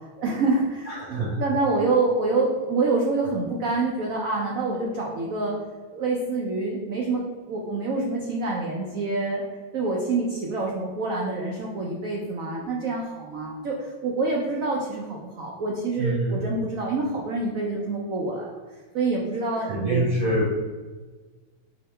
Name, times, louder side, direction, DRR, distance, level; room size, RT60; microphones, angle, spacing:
voice 1, 0.2-5.6 5.9-9.4 9.7-18.5 18.9-20.0, right 3 dB, 85° right, -2 dB, 0.7 m, -26 dB
voice 2, 0.9-1.4 16.0-16.4 19.6-20.7, right 1 dB, 55° right, -6 dB, 1.2 m, -25 dB
4.7 x 3.0 x 3.2 m, 1.3 s
omnidirectional pair, 2.2 m